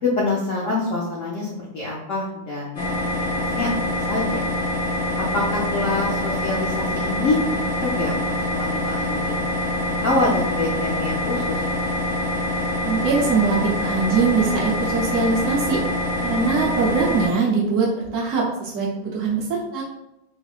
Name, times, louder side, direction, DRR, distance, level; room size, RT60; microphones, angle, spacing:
voice 1, 0.0-2.8 3.4-4.4 5.2-9.4 9.7-11.8, left 2 dB, 70° left, -4 dB, 0.7 m, -26 dB
sound 1, 2.7-17.3, left 1 dB, 45° left, 1.2 m, -25 dB
voice 2, 12.8-15.8 16.2-19.8, right 4 dB, 65° right, -4 dB, 0.8 m, -22 dB
5.1 x 3.2 x 2.4 m, 0.87 s
omnidirectional pair, 2.1 m